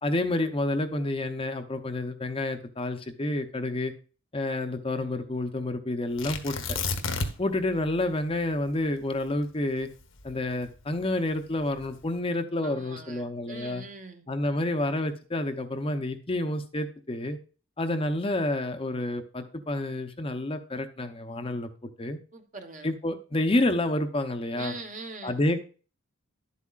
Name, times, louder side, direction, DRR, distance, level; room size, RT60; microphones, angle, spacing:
voice 1, 0.0-3.9 4.3-6.8 7.4-9.9 10.2-13.8 14.3-17.4 17.8-22.2 22.8-24.8 25.2-25.6, left 1 dB, 25° left, 7 dB, 0.7 m, -29 dB
Tearing, 6.2-7.6 7.9-8.0 8.5-10.9 11.6-12.0, left 3 dB, 85° left, 1.4 m, -32 dB
voice 2, 12.6-14.3 22.3-22.9 24.5-25.4, right 3 dB, 40° right, 6 dB, 1.2 m, -42 dB
11.0 x 8.3 x 2.4 m, 0.37 s
head